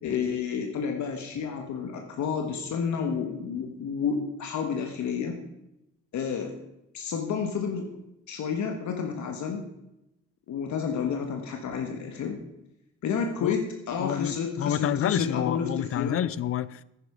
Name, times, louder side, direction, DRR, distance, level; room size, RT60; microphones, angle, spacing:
voice 1, 0.0-5.3 6.1-6.5 6.9-7.9 8.3-9.6 10.5-12.4 13.0-16.2, left 6 dB, 70° left, 1.5 m, -30 dB
voice 2, 14.0-16.8, left 10 dB, 50° left, 0.5 m, -28 dB
10.0 x 9.5 x 5.0 m
cardioid pair, 90°, 30 cm